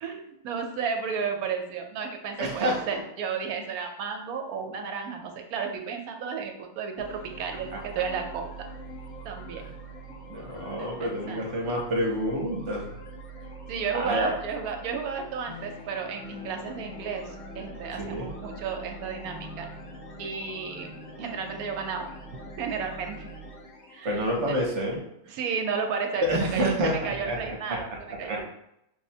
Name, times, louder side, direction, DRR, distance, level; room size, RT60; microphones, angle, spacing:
voice 1, 0.0-8.5 9.2-9.6 10.8-11.4 13.7-19.7 20.2-22.1 22.6-23.3 23.9-24.2 24.5-24.6 25.3-28.4, right 6 dB, 80° right, 4 dB, 1.1 m, -33 dB
voice 2, 2.4-3.0 9.6-9.7 10.3-12.9 13.9-14.3 18.0-18.3 24.0-25.0 25.3-25.4 26.2-26.9 27.3-27.4 27.7-27.8 28.2-28.4, equal, 60° right, -1 dB, 1.0 m, -28 dB
sound 1, 7.0-24.5, right 1 dB, 85° left, 0.4 m, -43 dB
5.3 x 2.1 x 2.7 m, 0.80 s
omnidirectional pair, 1.5 m